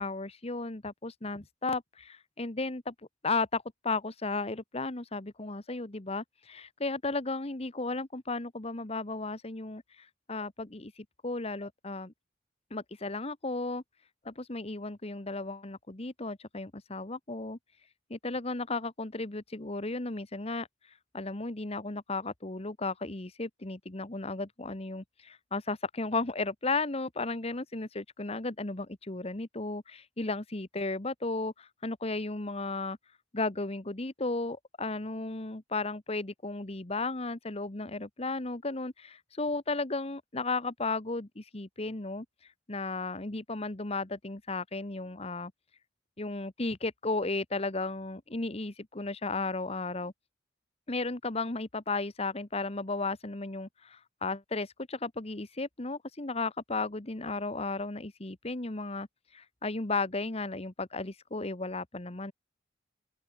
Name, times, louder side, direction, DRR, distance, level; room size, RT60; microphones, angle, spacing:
voice 1, 0.0-2.9 3.2-12.1 12.7-13.8 14.2-17.6 18.1-20.7 21.1-33.0 33.3-42.2 42.7-45.5 46.2-50.1 50.9-59.1 59.3-62.3, left 3 dB, 35° left, 1.3 m, -34 dB
open air
head